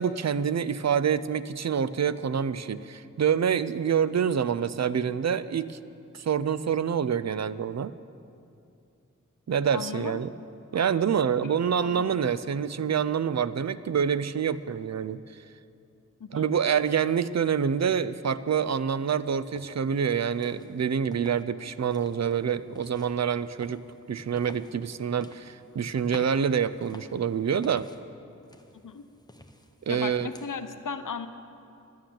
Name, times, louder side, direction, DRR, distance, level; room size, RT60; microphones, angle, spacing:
voice 1, 0.0-5.8 6.1-8.0 9.5-10.3 10.7-15.4 16.3-23.8 24.1-27.9 29.9-30.3, right 7 dB, 60° right, 15 dB, 0.4 m, -27 dB
voice 2, 9.7-10.2 11.4-12.2 16.2-16.5 28.8-29.0 29.9-31.3, left 5 dB, 80° left, 10 dB, 0.7 m, -36 dB
sound 1, 19.5-19.8 20.3-21.5 21.8-28.0 28.4-30.5, left 1 dB, 15° left, 0.9 m, -51 dB
11.0 x 9.1 x 7.3 m, 2.6 s
wide cardioid pair, 45°, 31 cm